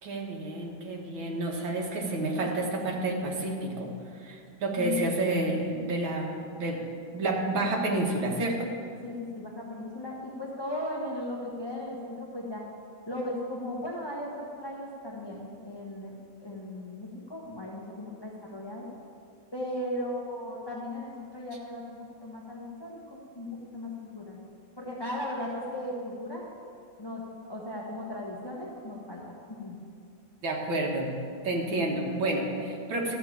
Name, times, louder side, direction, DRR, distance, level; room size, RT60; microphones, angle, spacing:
voice 1, 0.0-3.9 4.2-6.8 7.1-8.7 30.4-31.1 31.4-33.1, right 2 dB, 85° right, -1 dB, 2.3 m, -30 dB
voice 2, 4.8-5.1 9.0-12.6 13.0-16.2 16.4-18.9 19.5-24.4 24.8-26.4 27.0-27.2 27.5-29.8, left 1 dB, 15° left, -3 dB, 1.0 m, -37 dB
13.5 x 5.2 x 8.5 m, 2.4 s
omnidirectional pair, 2.1 m